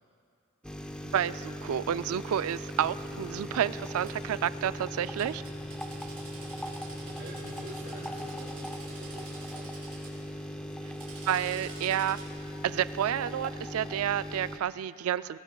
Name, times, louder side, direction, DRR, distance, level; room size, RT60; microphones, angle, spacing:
sound 1, 0.6-14.6, equal, 5° left, 0.6 m, -39 dB
voice 1, 1.1-5.4 11.3-12.2 12.6-15.4, right 10 dB, 85° right, 15 dB, 0.3 m, -30 dB
sound 2, 1.8-13.7, equal, 50° left, 2.8 m, -55 dB
Drill, 4.0-4.1 5.2-10.1 10.8-12.3, right 5 dB, 40° right, 4.5 m, -49 dB
voice 2, 7.0-9.8, equal, 55° right, -9 dB, 3.2 m, -47 dB
22.0 x 21.5 x 2.3 m, 2.4 s
head